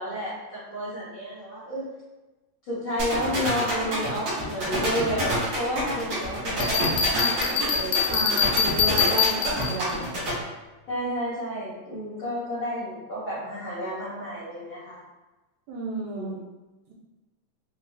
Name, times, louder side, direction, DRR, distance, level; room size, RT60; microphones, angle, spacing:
voice 1, 0.0-1.8 2.7-8.3 10.9-15.0 15.9-16.4, equal, 70° left, -11 dB, 1.1 m, -31 dB
sound 1, 3.0-10.3, right 1 dB, 60° right, 1.0 m, -28 dB
Bell, 6.6-10.0, left 6 dB, 90° left, 2.2 m, -24 dB
voice 2, 8.1-10.1 15.7-16.4 16.9-17.0, right 2 dB, 80° right, -2 dB, 2.1 m, -32 dB
4.9 x 2.3 x 3.3 m, 1.1 s
omnidirectional pair, 3.7 m